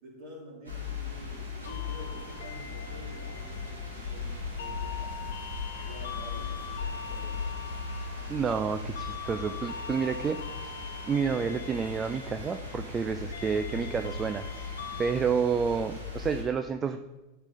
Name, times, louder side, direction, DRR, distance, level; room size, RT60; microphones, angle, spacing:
voice 1, 0.0-5.2 5.8-7.4, equal, 45° right, -2 dB, 2.8 m, -49 dB
sound 1, 0.6-16.4, left 4 dB, 75° right, 2.1 m, -38 dB
sound 2, 1.6-15.1, left 7 dB, 60° left, 0.8 m, -43 dB
voice 2, 8.3-10.7 11.1-14.4 15.0-17.0, right 6 dB, 20° right, 8 dB, 0.3 m, -29 dB
11.0 x 3.8 x 3.8 m, 1.1 s
figure-of-eight pair, 90°, 0 cm